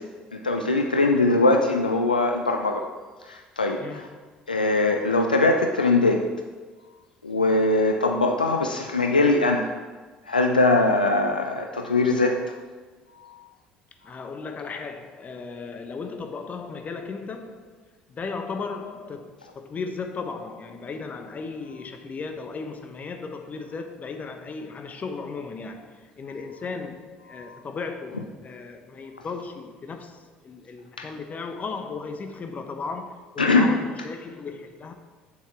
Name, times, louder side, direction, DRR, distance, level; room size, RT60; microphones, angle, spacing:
voice 1, 0.3-2.9 3.3-3.8 4.5-6.3 7.2-9.7 10.3-12.4 31.0-31.1 33.4-33.7, left 2 dB, 90° left, 0.5 m, -21 dB
voice 2, 3.8-4.2 14.0-34.9, left 4 dB, 35° left, 1.1 m, -36 dB
8.6 x 7.1 x 4.5 m
figure-of-eight pair, 55°, 5 cm